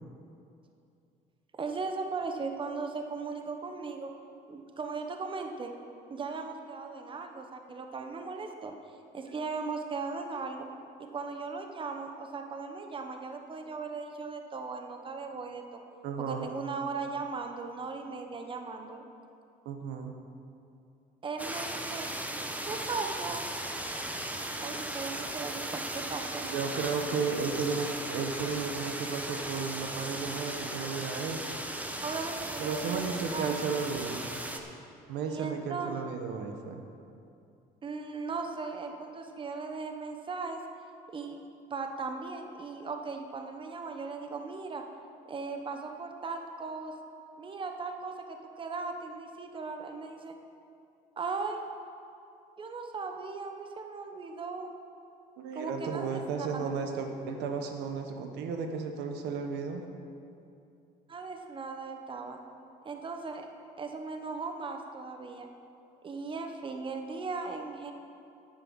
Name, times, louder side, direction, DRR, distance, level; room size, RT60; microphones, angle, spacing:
voice 1, 1.5-4.1 4.5-5.7 6.1-8.7 9.1-10.7 11.0-15.8 16.2-19.0 21.2-22.1 22.6-23.5 24.6-26.5 32.0-33.6 35.3-36.0 37.8-40.6 41.1-41.4 41.7-44.8 45.3-46.9 47.4-50.4 51.2-51.6 52.6-54.7 55.5-56.7 61.1-62.4 62.8-63.5 63.8-65.5 66.0-67.9, right 4 dB, 30° right, 4 dB, 1.0 m, -38 dB
voice 2, 16.0-16.5 19.6-20.1 26.4-31.4 32.6-34.2 35.1-36.8 55.4-59.8, right 5 dB, 85° right, 5 dB, 1.2 m, -34 dB
sound 1, 21.4-34.6, right 1 dB, 10° right, 1.0 m, -37 dB
9.3 x 9.1 x 6.3 m, 2.6 s
cardioid pair, 110°, 17 cm